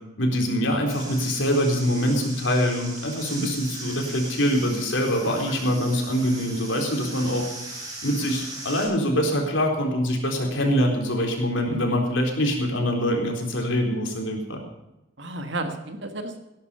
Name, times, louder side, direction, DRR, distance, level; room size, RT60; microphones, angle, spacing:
voice 1, 0.2-7.4 7.8-14.6, equal, 70° left, 2 dB, 3.9 m, -24 dB
sound 1, 0.9-8.8, right 2 dB, 20° right, 5.5 m, -39 dB
voice 2, 15.2-16.4, right 2 dB, 60° right, 6 dB, 1.7 m, -33 dB
18.0 x 10.5 x 5.6 m, 0.93 s
head